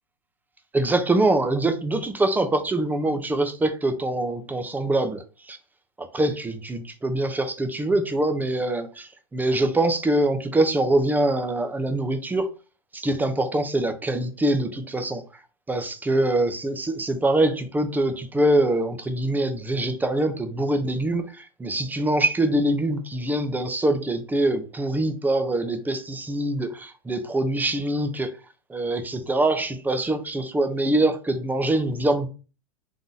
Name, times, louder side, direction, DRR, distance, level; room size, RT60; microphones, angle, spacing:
voice 1, 0.7-5.6 6.0-12.5 12.9-15.2 15.7-28.3 28.7-32.3, right 1 dB, 10° right, 0.7 m, -24 dB
4.0 x 2.9 x 3.9 m
hypercardioid pair, 120°, 19 cm